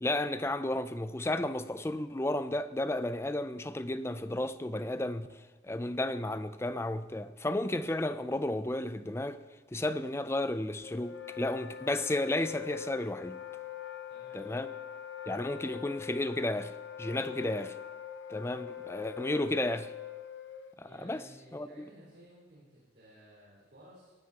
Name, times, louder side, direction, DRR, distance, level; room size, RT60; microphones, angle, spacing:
voice 1, 0.0-5.4 5.6-9.4 9.7-13.4 14.3-14.7 15.3-16.7 17.0-17.8 18.3-19.9 20.8-21.2 21.5-21.7, left 1 dB, 15° left, 0.4 m, -33 dB
Wind instrument woodwind instrument, 10.8-20.7, left 9 dB, 70° left, 0.9 m, -43 dB
voice 2, 14.1-14.7 20.8-24.1, equal, 60° right, 4.9 m, -56 dB
19.0 x 14.0 x 3.0 m
head